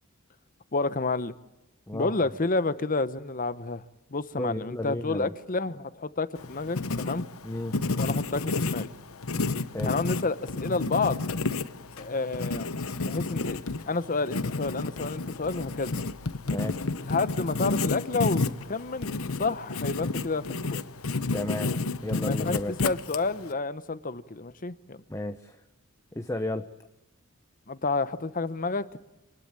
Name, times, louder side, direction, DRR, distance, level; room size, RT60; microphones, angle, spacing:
voice 1, 0.7-1.4 1.9-3.8 4.1-7.3 8.0-8.9 9.9-11.2 12.0-12.8 13.0-15.9 17.1-20.8 22.2-25.0 27.7-28.9, left 3 dB, 40° left, 14 dB, 0.9 m, -30 dB
voice 2, 4.3-5.3 7.4-7.8 9.7-10.0 16.5-16.8 21.3-22.7 25.1-25.6 26.1-26.7, left 1 dB, 15° left, 7 dB, 0.8 m, -33 dB
Writing, 6.4-23.5, left 3 dB, 75° left, 1.0 m, -31 dB
27.0 x 20.5 x 8.8 m, 1.0 s
head